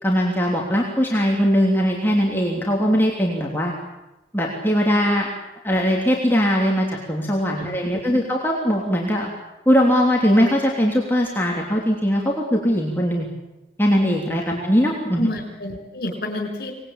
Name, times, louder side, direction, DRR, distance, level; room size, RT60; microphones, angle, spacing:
voice 1, 0.0-3.7 4.3-5.3 5.6-9.3 9.6-13.3 13.8-15.3, equal, 10° left, -2 dB, 3.2 m, -20 dB
voice 2, 7.6-8.2 14.5-14.6 15.2-16.7, left 1 dB, 60° left, 3 dB, 5.5 m, -31 dB
25.5 x 20.0 x 8.9 m, 0.99 s
head